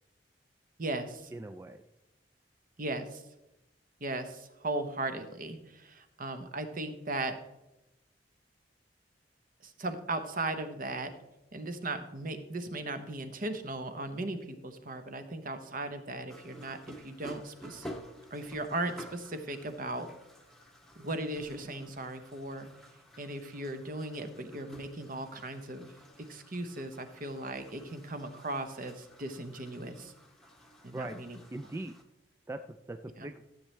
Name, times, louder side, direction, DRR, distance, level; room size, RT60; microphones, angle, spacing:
voice 1, 0.8-1.3 2.8-3.2 4.0-7.4 9.6-11.1 11.5-17.9 18.3-20.1 21.0-22.7 23.2-25.9 26.2-30.1 30.8-31.4 33.2-33.3, right 2 dB, 50° right, 8 dB, 0.9 m, -37 dB
voice 2, 1.3-1.8 30.9-31.2 31.5-31.9 32.5-33.4, right 2 dB, 15° right, 7 dB, 0.3 m, -40 dB
sound 1, 16.3-32.0, equal, ahead, 0.9 m, -51 dB
13.0 x 7.5 x 3.3 m, 0.94 s
head